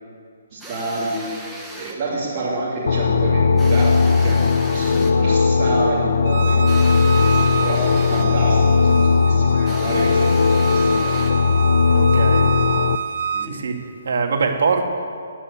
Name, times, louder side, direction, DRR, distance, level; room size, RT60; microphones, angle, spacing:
voice 1, 0.5-6.7 7.1-7.3 7.6-7.8 8.1-11.2 13.3-13.6, right 2 dB, 25° right, -9 dB, 2.8 m, -28 dB
sound 1, 0.6-2.1 3.6-5.2 6.6-8.4 9.6-11.5, right 1 dB, 5° right, 1.0 m, -37 dB
sound 2, 2.9-13.0, left 5 dB, 70° left, 0.5 m, -17 dB
Bowed string instrument, 6.3-13.5, right 7 dB, 50° right, 0.6 m, -28 dB
voice 2, 11.9-12.8 13.4-14.8, right 4 dB, 70° right, 3 dB, 1.8 m, -23 dB
11.0 x 9.2 x 8.3 m, 2.2 s
hypercardioid pair, 170°, 0 cm